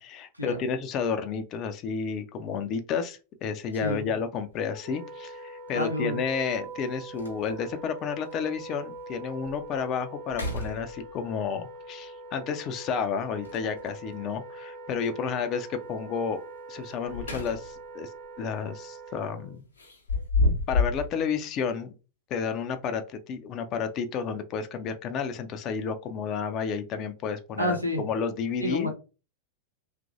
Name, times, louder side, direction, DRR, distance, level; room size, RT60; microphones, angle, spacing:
voice 1, 0.0-16.4 16.7-18.1 18.4-19.6 20.7-21.9 22.3-28.9, left 6 dB, 35° left, 8 dB, 0.4 m, -31 dB
sound 1, 4.4-4.6 6.3-6.4 6.8-6.9 7.2-7.7 8.3-8.4 8.9-9.0 9.4-9.8 10.2-11.3 13.4-14.1 16.8-17.9 18.3-18.5 19.8-21.1, left 3 dB, 75° left, 0.7 m, -29 dB
Wind instrument woodwind instrument, 4.7-19.6, right 2 dB, 55° right, 1.0 m, -43 dB
voice 2, 5.7-6.2 27.6-28.0 28.6-28.9, left 1 dB, 90° right, 2 dB, 0.8 m, -29 dB
2.9 x 2.5 x 2.5 m, 0.33 s
figure-of-eight pair, 90°, 0 cm